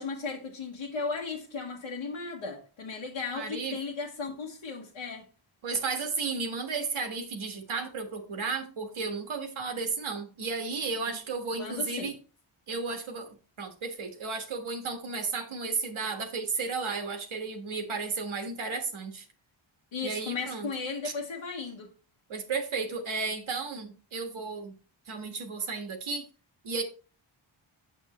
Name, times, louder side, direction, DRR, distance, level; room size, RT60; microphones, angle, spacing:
voice 1, 0.0-5.2 11.1-11.2 11.5-12.1 19.9-21.9, left 4 dB, 85° left, 1.4 m, -36 dB
voice 2, 3.3-3.8 5.6-12.1 12.7-19.2 20.0-20.7 21.0-21.1 22.3-24.7 25.1-26.3 26.6-26.8, right 4 dB, 75° right, 1.6 m, -33 dB
8.1 x 6.3 x 3.0 m
wide cardioid pair, 110°, 49 cm